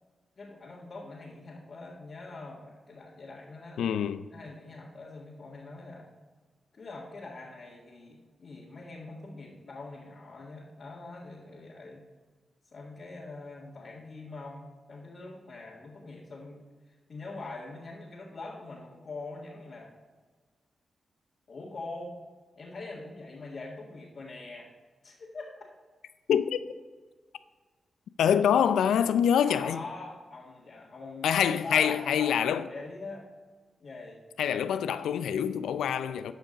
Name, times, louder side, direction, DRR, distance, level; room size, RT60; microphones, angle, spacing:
voice 1, 0.4-3.8 4.3-6.1 6.7-12.0 12.7-19.9 21.5-22.2 22.6-24.7 25.0-25.5 29.4-31.3 31.6-33.3 33.8-34.2 36.3-36.4, left 3 dB, 60° left, 1.8 m, -43 dB
voice 2, 3.8-4.3 26.3-26.6 28.2-29.8 31.2-32.7 34.4-36.3, left 8 dB, 85° left, 0.4 m, -25 dB
12.5 x 5.1 x 4.0 m
supercardioid pair, 45°, 0 cm